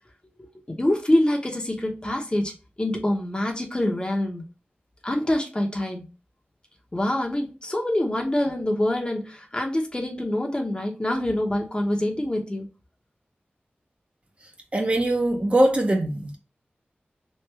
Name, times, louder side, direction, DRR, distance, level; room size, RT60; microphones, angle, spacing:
voice 1, 0.4-2.5 2.8-4.4 5.0-6.1 6.9-12.7, left 1 dB, 25° left, 0.9 m, -25 dB
voice 2, 14.7-16.3, right 1 dB, 35° right, 0.8 m, -22 dB
3.2 x 2.5 x 3.3 m
wide cardioid pair, 65°, 4 cm